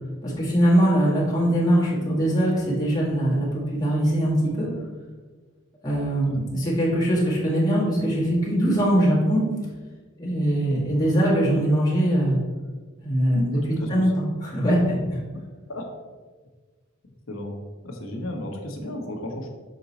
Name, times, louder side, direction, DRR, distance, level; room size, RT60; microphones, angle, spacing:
voice 1, 0.2-4.7 5.8-9.4 10.2-12.4 13.0-13.6 13.9-14.1 14.4-15.0, equal, 20° left, -7 dB, 1.7 m, -21 dB
voice 2, 6.0-6.3 12.0-12.1 13.3-14.1 15.7-15.9 17.3-17.6 17.8-19.5, left 1 dB, 80° left, 2 dB, 1.1 m, -33 dB
6.4 x 3.9 x 4.1 m, 1.4 s
head